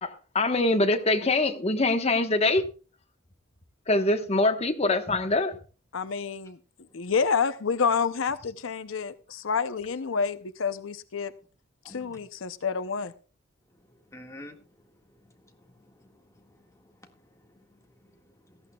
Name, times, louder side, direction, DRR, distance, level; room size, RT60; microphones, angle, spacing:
voice 1, 0.0-2.7 3.9-5.6, left 2 dB, 30° left, 1.2 m, -24 dB
voice 2, 5.9-6.6 6.9-11.3 11.8-13.1, left 5 dB, 85° left, 0.7 m, -28 dB
voice 3, 11.8-12.2 14.1-14.6 15.1-18.6, left 1 dB, 15° left, 1.8 m, -51 dB
18.0 x 14.0 x 2.3 m
head